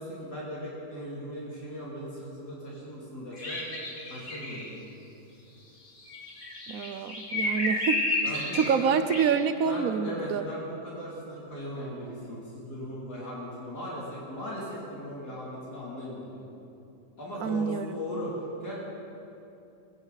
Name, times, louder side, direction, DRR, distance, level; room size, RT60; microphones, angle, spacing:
voice 1, 0.0-3.6 4.1-5.0 8.2-8.9 9.7-16.4 17.2-18.8, equal, 80° left, -6 dB, 3.5 m, -38 dB
sound 1, 3.3-4.7 6.1-8.8 9.1-9.3, left 1 dB, 50° left, 2.5 m, -31 dB
voice 2, 6.7-8.0 8.5-10.4 17.4-18.0, right 6 dB, 65° right, 11 dB, 1.0 m, -27 dB
21.5 x 16.0 x 4.1 m, 2.8 s
omnidirectional pair, 1.7 m